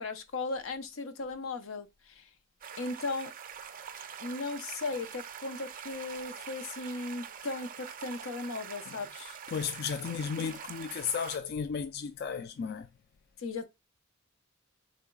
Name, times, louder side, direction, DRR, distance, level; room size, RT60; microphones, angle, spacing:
voice 1, 0.0-2.2 2.8-3.3 4.2-9.4 13.4-13.6, left 3 dB, 85° left, 0.7 m, -37 dB
sound 1, 2.6-11.4, right 8 dB, 45° right, 0.5 m, -45 dB
voice 2, 9.5-12.9, left 6 dB, 50° left, 0.3 m, -34 dB
3.9 x 3.4 x 3.7 m
head